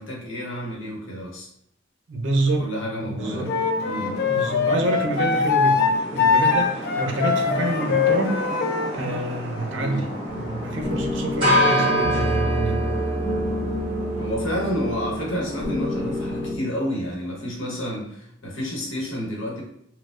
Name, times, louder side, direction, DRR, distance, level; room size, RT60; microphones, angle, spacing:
voice 1, 0.0-1.5 2.6-3.6 3.8-4.2 5.7-5.8 9.8-10.1 14.2-19.6, equal, 80° left, -2 dB, 1.0 m, -30 dB
voice 2, 2.1-2.7 3.0-3.6 4.3-5.9 6.1-8.4 8.9-10.1 10.3-12.9, right 2 dB, 70° right, 3 dB, 0.5 m, -27 dB
sound 1, 3.2-16.5, equal, 25° right, 1.4 m, -29 dB
Wind instrument woodwind instrument, 3.5-8.9, left 5 dB, 55° left, 0.3 m, -22 dB
sound 2, 10.3-16.6, left 2 dB, 5° right, 1.5 m, -29 dB
4.2 x 2.2 x 2.4 m, 0.74 s
head